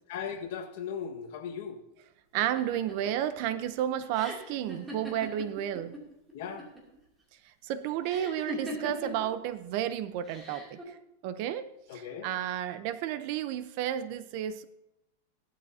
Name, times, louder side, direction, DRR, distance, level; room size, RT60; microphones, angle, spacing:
voice 1, 0.1-1.8 6.3-6.7 11.9-12.3, left 7 dB, 55° left, 5 dB, 1.6 m, -38 dB
voice 2, 2.3-5.9 7.6-11.0 11.2-14.6, right 11 dB, 45° right, 12 dB, 0.7 m, -32 dB
sound 1, 2.4-6.0 6.3-7.0 8.1-9.3 10.3-10.8, right 1 dB, 10° right, 2.8 m, -40 dB
17.0 x 12.0 x 2.8 m, 0.87 s
supercardioid pair, 165°, 0 cm